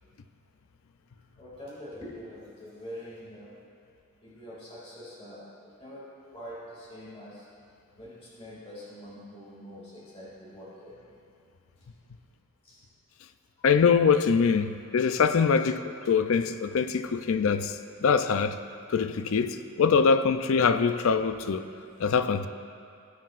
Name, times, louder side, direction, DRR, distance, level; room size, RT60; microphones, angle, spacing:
voice 1, 1.4-3.5 4.2-6.0 6.3-7.5 8.0-11.2 12.6-12.8 17.4-17.5, equal, 25° left, 2.3 m, -44 dB
voice 2, 13.6-18.6 18.9-21.6 22.0-22.5, left 5 dB, 65° left, 0.4 m, -23 dB
19.0 x 7.4 x 2.5 m
head